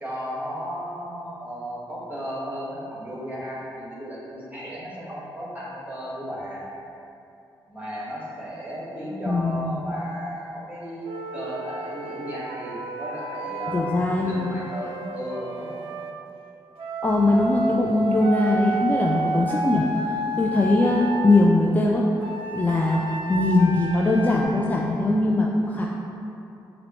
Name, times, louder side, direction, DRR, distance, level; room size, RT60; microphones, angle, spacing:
voice 1, 0.0-6.7 7.7-15.8, equal, 15° right, -7 dB, 1.5 m, -35 dB
voice 2, 9.3-9.8 13.7-14.5 17.0-22.0 22.5-23.0 23.3-25.9, left 2 dB, 20° left, -3 dB, 0.3 m, -21 dB
Wind instrument woodwind instrument, 11.0-16.1 16.8-21.4 22.2-24.4, right 2 dB, 75° right, 0.4 m, -31 dB
6.0 x 2.0 x 3.0 m, 2.8 s
supercardioid pair, 60°, 9 cm